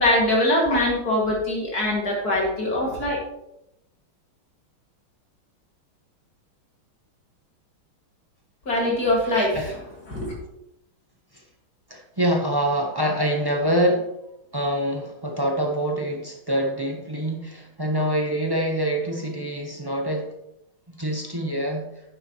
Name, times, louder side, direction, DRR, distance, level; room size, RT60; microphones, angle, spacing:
voice 1, 0.0-3.2 8.7-9.6 10.1-10.4, left 1 dB, 45° left, -3 dB, 2.8 m, -22 dB
voice 2, 9.3-9.7 11.3-11.4 11.9-14.1 14.5-20.3 20.9-21.9, equal, 25° right, 1 dB, 0.5 m, -25 dB
10.0 x 9.9 x 3.1 m, 0.83 s
omnidirectional pair, 2.3 m